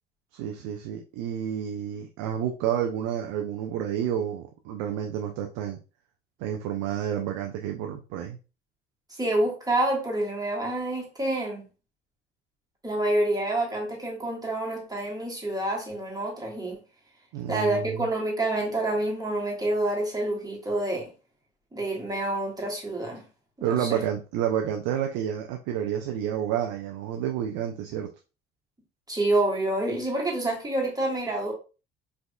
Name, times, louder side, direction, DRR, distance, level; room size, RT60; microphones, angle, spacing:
voice 1, 0.3-5.8 6.4-8.4 17.3-18.1 23.6-28.1, right 9 dB, 60° right, 0.5 m, -30 dB
voice 2, 9.2-11.7 12.8-16.8 17.5-21.1 21.7-23.2 23.6-24.0 29.1-31.5, right 1 dB, 15° right, 1.6 m, -27 dB
4.7 x 2.7 x 2.2 m
figure-of-eight pair, 55°, 29 cm